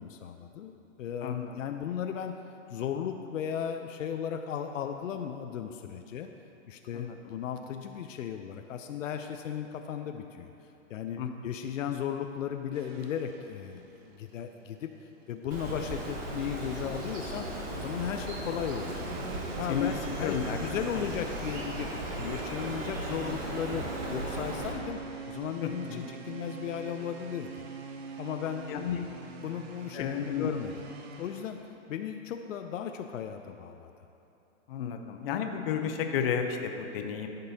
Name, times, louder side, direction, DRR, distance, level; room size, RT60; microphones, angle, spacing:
voice 1, 0.0-2.3 2.7-6.3 6.7-10.5 10.9-14.9 15.3-17.5 17.7-19.0 19.6-21.9 22.2-23.8 24.1-25.0 25.3-27.7 28.2-28.8 29.4-30.8 31.2-31.6 31.9-33.9, left 8 dB, 80° left, 6 dB, 0.6 m, -36 dB
voice 2, 1.2-1.6 6.9-7.2 11.2-11.3 19.7-19.9 20.2-20.6 20.9-21.0 25.6-26.0 28.7-29.0 29.9-30.5 34.7-37.3, left 8 dB, 50° left, 5 dB, 0.8 m, -32 dB
sound 1, 12.7-31.7, right 6 dB, 55° right, 0.8 m, -46 dB
Bird, 15.5-24.7, right 1 dB, 20° right, 1.1 m, -36 dB
14.5 x 5.4 x 2.8 m, 2.9 s
hypercardioid pair, 145°, 38 cm